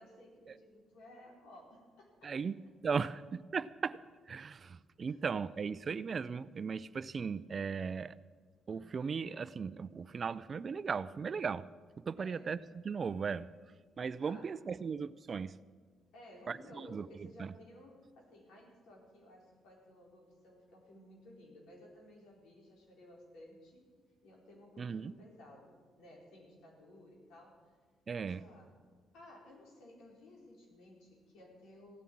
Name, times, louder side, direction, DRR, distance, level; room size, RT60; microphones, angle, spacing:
voice 1, 0.0-2.5 5.1-5.2 12.2-12.5 14.2-14.5 16.1-23.9 24.2-27.8 28.1-28.8 29.1-32.0, left 1 dB, 85° left, -1 dB, 4.5 m, -56 dB
voice 2, 2.2-2.6 2.8-4.0 4.3-8.2 8.7-11.6 12.1-13.5 14.0-15.6 16.5-17.5 24.8-25.1 28.1-28.4, right 5 dB, 45° right, 16 dB, 0.5 m, -37 dB
16.0 x 9.9 x 8.7 m, 1.5 s
cardioid pair, 90°, 0 cm